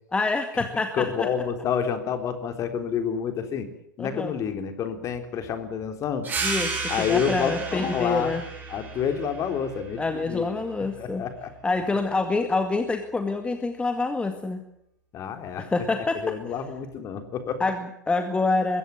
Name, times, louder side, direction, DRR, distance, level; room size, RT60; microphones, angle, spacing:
voice 1, 0.1-1.3 4.0-4.3 6.4-6.7 7.0-8.4 10.0-11.2 11.6-14.6 15.6-16.3 17.6-18.8, left 3 dB, 10° left, 7 dB, 2.1 m, -26 dB
voice 2, 0.9-3.7 4.0-6.3 6.9-8.3 8.7-10.5 11.0-11.5 15.1-15.6 16.2-17.6, left 7 dB, 30° left, 8 dB, 3.7 m, -28 dB
sound 1, 6.2-11.4, right 4 dB, 20° right, 7.8 m, -34 dB
22.0 x 16.5 x 9.6 m, 0.77 s
hypercardioid pair, 100°, 10 cm